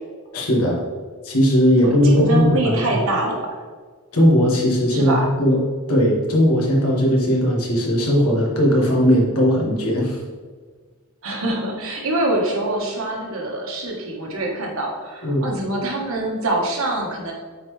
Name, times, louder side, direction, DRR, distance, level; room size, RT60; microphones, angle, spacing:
voice 1, 0.3-0.8 1.2-3.0 4.1-5.6 5.9-10.2 15.2-15.5, equal, 90° left, -2 dB, 1.6 m, -18 dB
voice 2, 1.8-3.4 4.9-5.3 11.2-17.3, right 1 dB, 75° right, 0 dB, 1.4 m, -24 dB
8.4 x 4.1 x 3.3 m, 1.5 s
head